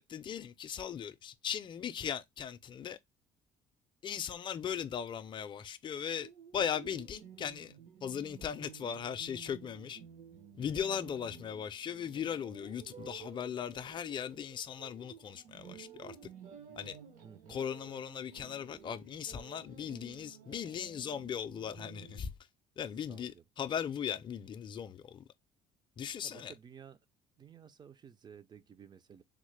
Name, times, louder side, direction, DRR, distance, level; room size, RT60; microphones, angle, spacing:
voice 1, 0.0-3.0 4.0-7.7 8.0-10.0 10.5-16.2 16.8-17.0 17.5-22.3 22.8-25.3 26.0-26.5, left 8 dB, 35° left, 0.4 m, -38 dB
sound 1, 6.2-22.2, right 7 dB, 70° right, 0.9 m, -53 dB
voice 2, 17.2-17.6 23.1-23.4 26.2-27.0 27.4-29.2, right 7 dB, 30° right, 0.4 m, -54 dB
3.6 x 2.1 x 3.1 m
cardioid pair, 105°, 14 cm